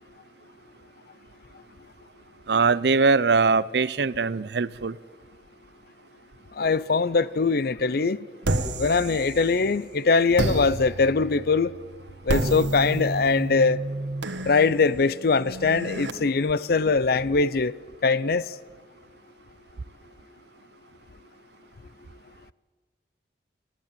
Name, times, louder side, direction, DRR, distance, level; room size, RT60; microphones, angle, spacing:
voice 1, 2.5-5.0, right 4 dB, 65° right, 0.6 m, -21 dB
voice 2, 6.6-8.2 8.8-11.7 12.2-13.8 14.5-17.7 18.0-18.5, left 4 dB, 55° left, 0.6 m, -22 dB
sound 1, 8.4-9.8 10.4-16.1, right 2 dB, 85° right, 1.5 m, -30 dB
28.5 x 11.0 x 9.0 m
head